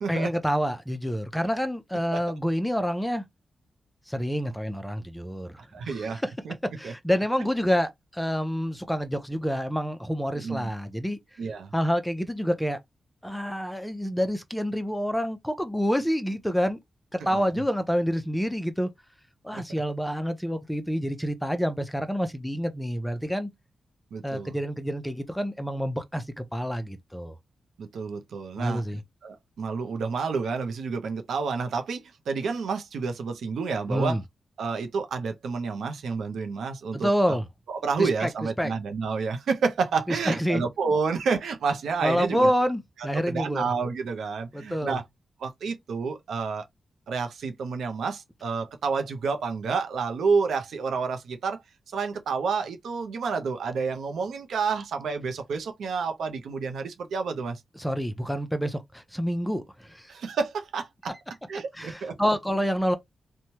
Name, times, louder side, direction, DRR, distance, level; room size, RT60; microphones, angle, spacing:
voice 1, 0.1-3.2 4.1-6.3 6.6-11.2 11.7-12.8 13.2-16.8 17.1-18.9 19.4-23.5 24.2-27.4 28.6-29.0 33.9-34.2 36.9-37.5 38.0-38.3 38.6-38.7 40.1-40.6 42.0-43.6 44.5-45.0 57.8-60.1 61.7-63.0, equal, 5° left, 0.4 m, -28 dB
voice 2, 5.7-6.5 6.8-6.9 10.3-10.7 11.4-11.7 17.3-17.5 19.5-19.6 24.1-24.6 27.8-34.2 34.6-37.4 37.7-42.5 43.3-45.0 45.4-46.7 47.1-51.6 51.9-57.6 60.1-61.1 61.5-62.2, right 5 dB, 90° right, 0.6 m, -29 dB
3.0 x 2.2 x 2.7 m
wide cardioid pair, 130°, 0 cm